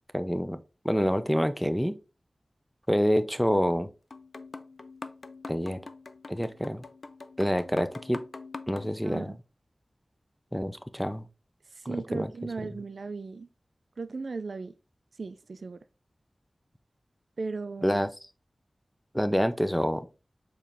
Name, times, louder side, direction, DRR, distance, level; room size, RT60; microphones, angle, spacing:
voice 1, 0.1-0.6 0.8-1.9 2.9-3.9 5.5-5.8 6.3-6.8 7.4-8.2 8.7-9.3 10.5-11.3 11.9-12.3 17.8-18.1 19.1-20.1, equal, ahead, 0.5 m, -27 dB
sound 1, 4.1-8.9, left 3 dB, 70° left, 0.3 m, -44 dB
voice 2, 9.0-9.4 11.7-13.5 14.0-14.7 15.2-15.8 17.4-18.0, right 4 dB, 85° right, 0.3 m, -37 dB
4.6 x 3.1 x 3.4 m
wide cardioid pair, 50°, 0 cm